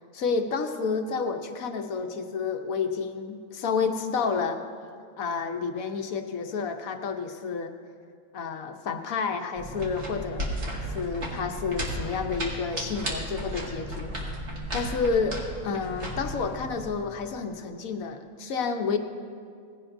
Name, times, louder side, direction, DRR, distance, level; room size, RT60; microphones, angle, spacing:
voice 1, 0.1-4.6 5.2-7.7 8.3-10.5 10.9-14.1 14.7-19.0, left 5 dB, 85° left, 6 dB, 1.3 m, -30 dB
sound 1, 9.6-16.9, right 1 dB, 55° right, 2.3 m, -34 dB
18.0 x 16.0 x 2.6 m, 2.2 s
omnidirectional pair, 1.4 m